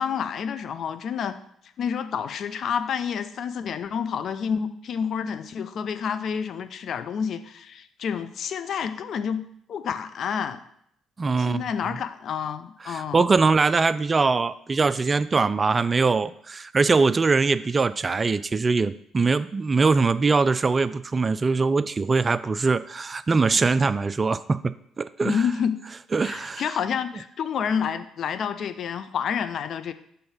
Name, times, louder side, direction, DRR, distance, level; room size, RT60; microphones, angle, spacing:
voice 1, 0.0-1.4 1.8-9.4 9.7-10.6 11.4-13.3 25.2-25.8 26.2-29.9, left 7 dB, 55° left, 10 dB, 0.5 m, -29 dB
voice 2, 11.2-11.6 12.8-25.4 26.1-26.7, right 4 dB, 35° right, 15 dB, 0.3 m, -22 dB
5.4 x 4.4 x 5.4 m, 0.71 s
hypercardioid pair, 45°, 0 cm